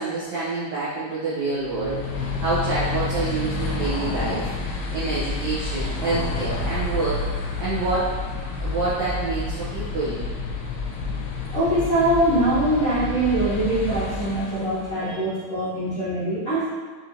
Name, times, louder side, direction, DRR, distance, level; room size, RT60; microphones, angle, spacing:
voice 1, 0.0-8.3 8.6-10.2, right 3 dB, 90° right, -11 dB, 1.5 m, -27 dB
sound 1, 1.6-15.1, left 3 dB, 90° left, 2.8 m, -29 dB
voice 2, 11.5-16.7, right 1 dB, 65° left, -15 dB, 1.3 m, -23 dB
6.6 x 2.8 x 2.8 m, 1.4 s
omnidirectional pair, 4.7 m